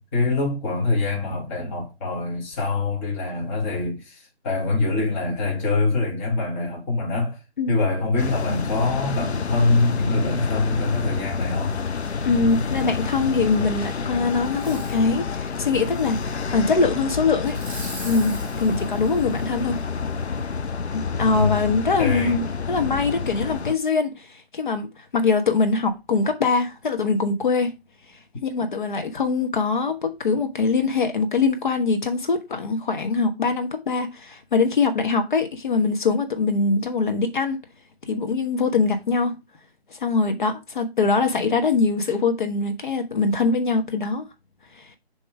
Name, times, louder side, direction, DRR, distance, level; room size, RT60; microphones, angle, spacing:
voice 1, 0.0-7.4 7.7-11.8 21.2-22.4, left 3 dB, 15° left, 1.1 m, -24 dB
sound 1, 8.2-23.7, left 5 dB, 85° left, 0.7 m, -28 dB
voice 2, 12.2-17.6 18.0-19.8 20.9-27.7 28.4-37.6 38.1-39.3 39.9-44.3 44.8-44.9, left 4 dB, 50° left, 1.1 m, -23 dB
Fireworks, 14.4-15.1 15.6-16.6 17.4-19.8 20.4-20.5, right 1 dB, 5° right, 2.3 m, -42 dB
6.9 x 3.0 x 4.7 m
figure-of-eight pair, 155°, 32 cm